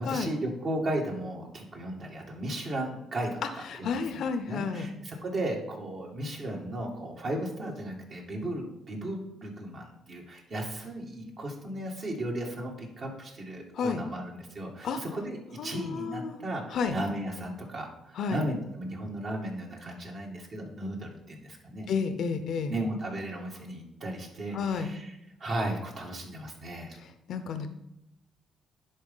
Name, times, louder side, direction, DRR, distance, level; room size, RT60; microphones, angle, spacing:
voice 1, 0.0-21.9 22.7-25.1 25.4-27.0, right 1 dB, 55° right, 0 dB, 2.2 m, -35 dB
voice 2, 3.7-4.9 13.7-14.0 14.8-15.0 15.6-16.4 16.7-17.0 18.2-18.4 21.9-22.7 24.5-24.9 27.3-27.7, left 5 dB, 70° left, 9 dB, 0.7 m, -31 dB
11.0 x 4.2 x 3.9 m, 0.87 s
cardioid pair, 90°, 0 cm